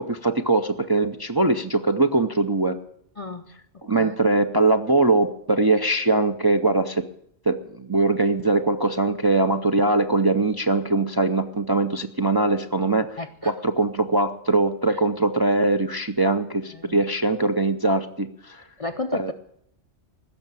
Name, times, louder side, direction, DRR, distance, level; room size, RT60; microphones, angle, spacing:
voice 1, 0.0-2.8 3.8-7.0 7.5-18.6 19.1-19.3, right 2 dB, 30° right, 6 dB, 0.4 m, -22 dB
voice 2, 3.2-4.2 13.2-13.5 14.9-15.0 16.7-17.0 18.8-19.3, left 3 dB, 45° left, 7 dB, 0.5 m, -34 dB
16.0 x 6.7 x 8.9 m, 0.70 s
omnidirectional pair, 1.2 m